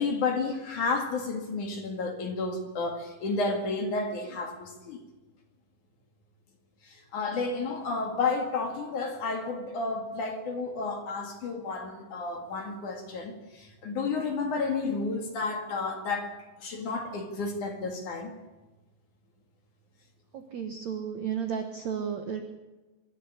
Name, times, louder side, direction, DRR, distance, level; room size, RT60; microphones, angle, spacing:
voice 1, 0.0-5.0 6.8-18.3, left 3 dB, 50° left, 2.9 m, -31 dB
voice 2, 20.3-22.4, right 7 dB, 75° right, 1.6 m, -33 dB
24.0 x 12.5 x 10.0 m
omnidirectional pair, 5.3 m